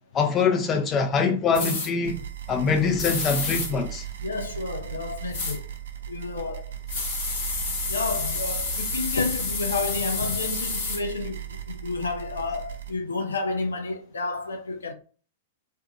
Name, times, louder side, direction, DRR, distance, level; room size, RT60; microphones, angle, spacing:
voice 1, 0.1-2.2 2.5-4.0, left 5 dB, 25° left, 0.5 m, -23 dB
sound 1, 1.5-1.9 3.0-3.7 5.3-5.6 6.9-11.0, left 4 dB, 50° left, 1.0 m, -29 dB
sound 2, 2.0-12.9, right 10 dB, 65° right, 0.5 m, -37 dB
voice 2, 4.2-5.7 6.1-6.6 7.9-14.9, left 3 dB, 75° left, 0.5 m, -30 dB
2.5 x 2.5 x 2.5 m
figure-of-eight pair, 100°, 0 cm